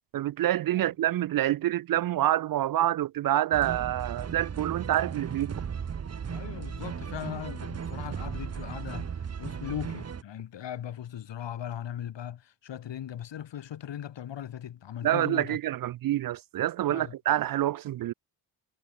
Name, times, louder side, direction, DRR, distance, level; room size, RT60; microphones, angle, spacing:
voice 1, 0.1-5.5 15.0-18.1, right 13 dB, 50° right, 0.4 m, -27 dB
sound 1, 3.5-10.2, right 7 dB, 35° right, 1.0 m, -36 dB
voice 2, 6.3-15.6 16.9-17.1, left 10 dB, 65° left, 3.2 m, -39 dB
supercardioid pair, 65°, 46 cm